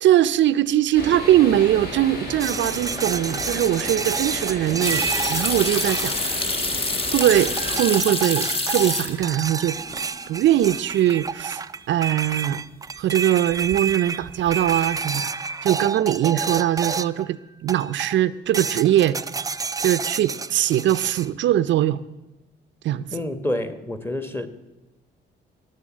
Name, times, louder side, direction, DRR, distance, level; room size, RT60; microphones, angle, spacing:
voice 1, 0.0-5.0 5.3-6.5 7.1-9.8 10.3-12.6 13.0-15.3 15.6-19.2 19.8-22.0 22.8-23.1, right 12 dB, 70° right, 14 dB, 0.5 m, -21 dB
sound 1, 0.9-7.8, left 1 dB, 55° left, 5.0 m, -34 dB
sound 2, 2.4-6.8 7.2-17.3 17.7-18.2 18.5-21.3, right 5 dB, 20° right, 0.3 m, -30 dB
sound 3, 4.8-9.5 9.8-10.4 10.7-10.8 13.5-13.9 14.2-14.7, left 2 dB, 30° left, 1.4 m, -27 dB
voice 2, 23.1-24.5, left 1 dB, 10° left, 10 dB, 1.3 m, -28 dB
18.0 x 6.9 x 7.4 m, 1.1 s
cardioid pair, 90°, 20 cm